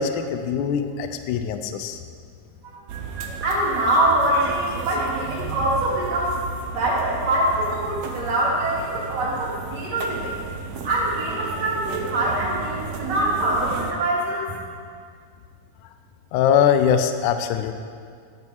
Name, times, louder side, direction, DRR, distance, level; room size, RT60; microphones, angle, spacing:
voice 1, 0.0-2.0 16.3-17.7, left 8 dB, 85° left, 8 dB, 1.7 m, -22 dB
sound 1, 2.9-13.9, right 5 dB, 70° right, 1.7 m, -33 dB
voice 2, 3.4-6.4 6.7-10.4 10.8-14.5, right 1 dB, 45° right, -7 dB, 3.9 m, -24 dB
13.5 x 11.0 x 4.7 m, 2.1 s
omnidirectional pair, 4.3 m